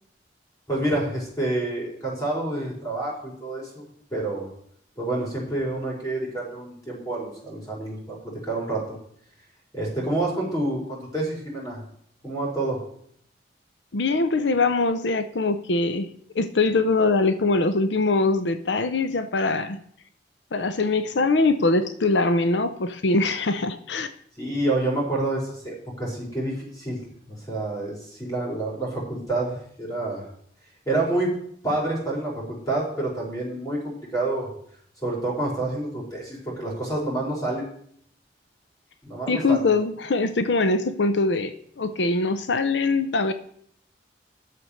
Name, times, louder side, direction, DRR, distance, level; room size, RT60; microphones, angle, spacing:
voice 1, 0.7-3.8 4.1-4.5 5.0-9.0 9.7-11.8 12.2-12.8 24.4-30.2 30.8-31.3 31.6-34.5 35.0-37.7 39.0-39.7, right 2 dB, 20° left, -3 dB, 4.8 m, -28 dB
voice 2, 13.9-19.8 20.5-24.1 39.3-43.3, left 3 dB, 85° left, 10 dB, 0.7 m, -23 dB
11.0 x 6.9 x 6.4 m, 0.66 s
head